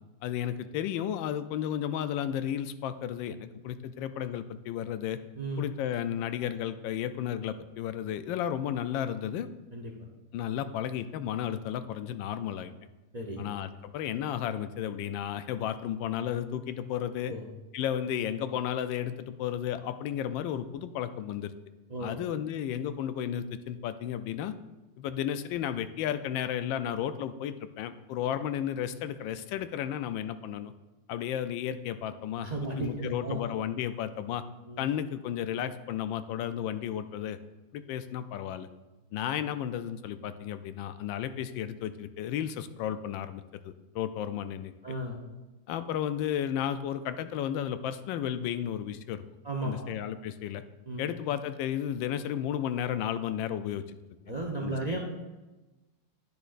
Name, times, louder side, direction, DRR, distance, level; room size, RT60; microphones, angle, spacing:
voice 1, 0.2-5.2 5.6-9.5 10.3-12.7 13.4-17.3 17.7-21.5 22.0-24.5 25.0-30.7 31.1-32.5 32.8-34.4 34.8-37.4 37.7-38.7 39.1-44.7 45.7-49.2 49.6-50.6 51.0-54.0 54.6-55.0, left 10 dB, 80° left, 11 dB, 1.3 m, -33 dB
voice 2, 13.1-13.5 17.3-17.4 21.9-22.2 32.4-33.4 34.7-34.8 44.8-45.2 49.4-49.9 50.9-51.1 54.3-55.0, right 2 dB, 60° right, 0 dB, 0.4 m, -34 dB
10.0 x 10.0 x 2.5 m, 1.1 s
omnidirectional pair, 2.1 m